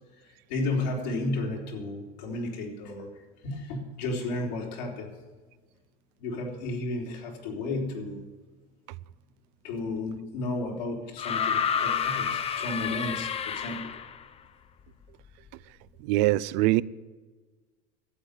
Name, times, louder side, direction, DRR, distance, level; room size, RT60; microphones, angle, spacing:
voice 1, 0.2-3.1 3.4-5.1 6.2-8.3 9.6-13.9, left 2 dB, 85° left, 3.5 m, -33 dB
sound 1, 11.2-14.2 15.5-15.6, left 7 dB, 30° left, 0.6 m, -29 dB
voice 2, 16.0-16.8, right 18 dB, 70° right, 0.5 m, -23 dB
12.5 x 7.8 x 9.8 m
supercardioid pair, 95°, 21 cm